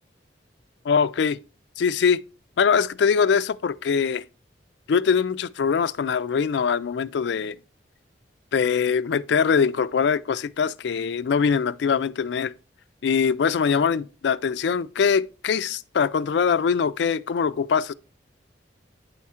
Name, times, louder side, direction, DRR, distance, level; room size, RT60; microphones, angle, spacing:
voice 1, 0.9-1.4 1.8-2.2 2.6-4.2 4.9-7.6 8.5-12.5 13.0-17.9, left 6 dB, 75° left, 0.4 m, -22 dB
9.4 x 3.6 x 4.2 m
head